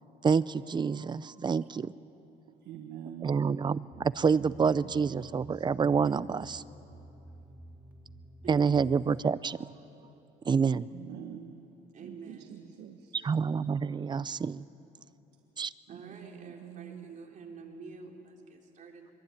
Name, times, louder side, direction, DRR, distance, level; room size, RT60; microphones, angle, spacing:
voice 1, 0.2-1.9 3.2-6.6 8.5-9.7 10.4-10.9 13.1-14.6 15.6-15.7, right 6 dB, 25° right, 17 dB, 0.6 m, -28 dB
voice 2, 2.5-3.4 5.0-5.2 10.9-11.6 12.0-13.2 15.9-17.1, right 9 dB, 80° right, 4 dB, 1.5 m, -45 dB
sound 1, 3.7-9.1, right 1 dB, 10° right, 2.5 m, -51 dB
voice 3, 8.4-9.0 11.9-12.6 12.9-13.3 15.9-19.1, right 5 dB, 50° right, 1 dB, 3.6 m, -48 dB
23.5 x 23.0 x 9.3 m, 2.9 s
cardioid pair, 110°, 17 cm